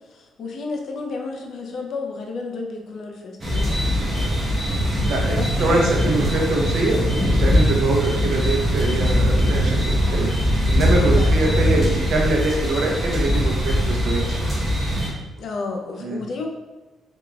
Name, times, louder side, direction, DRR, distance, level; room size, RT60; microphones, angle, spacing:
voice 1, 0.1-4.8 5.3-5.8 11.1-11.3 15.4-16.5, left 3 dB, 50° left, 1 dB, 0.5 m, -32 dB
sound 1, 3.4-15.1, equal, 20° right, 1.1 m, -21 dB
sound 2, 4.1-10.6 10.9-12.0 12.3-12.5 12.8-13.9 14.2-14.4 14.6-15.1, equal, 50° right, 1.1 m, -37 dB
voice 2, 5.0-7.0 7.4-14.4 16.0-16.2, right 2 dB, 65° right, -1 dB, 0.7 m, -24 dB
3.7 x 3.5 x 2.3 m, 1.1 s
cardioid pair, 180°, 0 cm